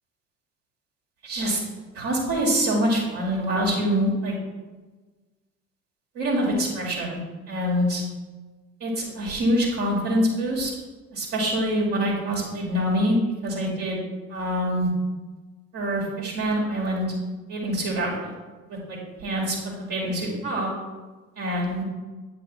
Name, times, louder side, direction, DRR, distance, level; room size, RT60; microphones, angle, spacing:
voice 1, 1.2-1.6 1.9-4.3 6.1-7.2 7.5-8.0 8.8-10.7 11.1-13.2 13.4-14.0 14.3-14.9 15.7-17.0 17.5-18.3 18.7-20.7 21.4-21.8, equal, 60° right, -4 dB, 1.5 m, -25 dB
8.3 x 3.1 x 4.5 m, 1.3 s
figure-of-eight pair, 50°, 41 cm